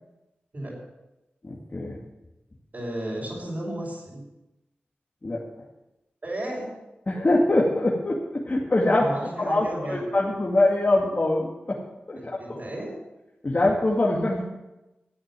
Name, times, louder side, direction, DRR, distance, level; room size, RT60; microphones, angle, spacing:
voice 1, 1.4-2.0 5.2-5.4 7.1-9.1 9.4-11.8 12.1-12.6 13.4-14.4, left 2 dB, 45° left, -4 dB, 2.5 m, -23 dB
voice 2, 2.7-4.2 6.2-6.7 9.0-10.0 12.2-12.9, right 1 dB, 50° right, -7 dB, 5.9 m, -33 dB
13.0 x 8.7 x 7.7 m, 0.98 s
cardioid pair, 40°, 4 cm